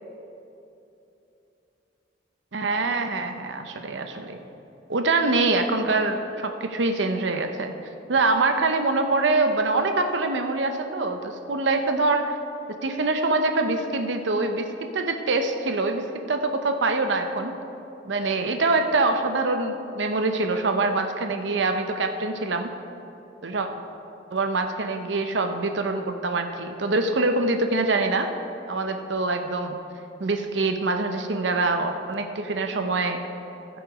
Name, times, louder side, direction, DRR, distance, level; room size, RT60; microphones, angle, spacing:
voice 1, 2.5-4.4 4.9-7.7 8.1-12.4 12.8-17.5 18.0-22.7 23.4-23.7 24.3-28.3 28.7-29.8 30.2-33.2, right 3 dB, 70° right, 6 dB, 0.7 m, -24 dB
15.5 x 6.3 x 4.8 m, 2.9 s
head